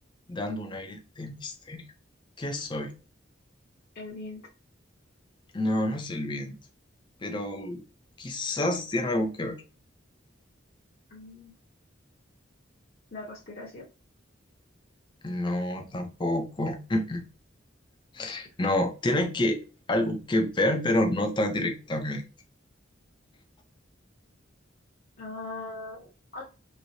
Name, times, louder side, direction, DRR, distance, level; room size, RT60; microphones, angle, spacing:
voice 1, 0.3-1.8 2.4-2.9 5.5-6.5 7.2-7.8 8.2-9.6 15.2-17.2 18.1-19.6 19.9-22.2, left 1 dB, 25° left, 0.6 m, -28 dB
voice 2, 3.9-4.4 11.1-11.5 13.1-13.8 25.2-26.5, left 2 dB, 50° left, 0.9 m, -40 dB
3.2 x 3.1 x 2.7 m
head